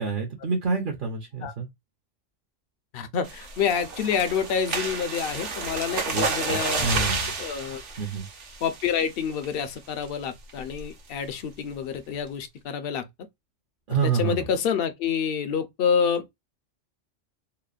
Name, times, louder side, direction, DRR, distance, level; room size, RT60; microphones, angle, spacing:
voice 1, 0.0-1.7 6.1-7.3 8.0-8.3 13.9-14.5, right 5 dB, 50° right, 0.7 m, -28 dB
voice 2, 2.9-6.9 7.4-7.8 8.6-13.1 14.0-16.3, left 7 dB, 60° left, 0.6 m, -27 dB
sound 1, 3.2-9.0 9.4-9.7 10.0-10.1 10.5-10.8, right 4 dB, 65° right, 1.1 m, -30 dB
2.9 x 2.1 x 2.3 m
omnidirectional pair, 1.3 m